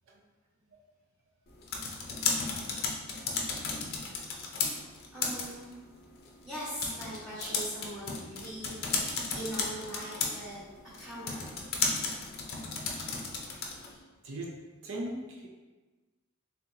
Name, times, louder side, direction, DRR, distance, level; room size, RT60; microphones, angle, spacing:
sound 1, 1.5-14.0, left 4 dB, 50° left, 0.5 m, -35 dB
voice 1, 5.1-5.7 6.4-8.8 9.3-10.6 11.0-11.6 13.3-14.0, equal, 5° right, -15 dB, 1.4 m, -41 dB
voice 2, 14.8-15.5, right 1 dB, 80° right, 0 dB, 0.5 m, -37 dB
3.8 x 3.4 x 2.8 m, 1.3 s
head